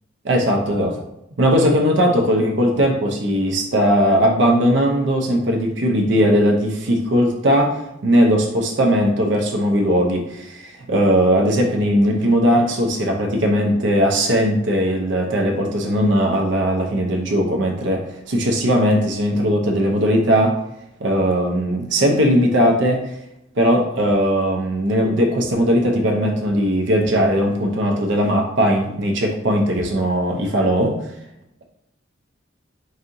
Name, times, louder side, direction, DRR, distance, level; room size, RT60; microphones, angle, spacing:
voice 1, 0.2-1.0 1.4-7.8 8.0-20.5 21.0-23.0 23.6-30.9, equal, 65° right, 1 dB, 0.5 m, -18 dB
4.1 x 3.6 x 2.6 m, 0.83 s
head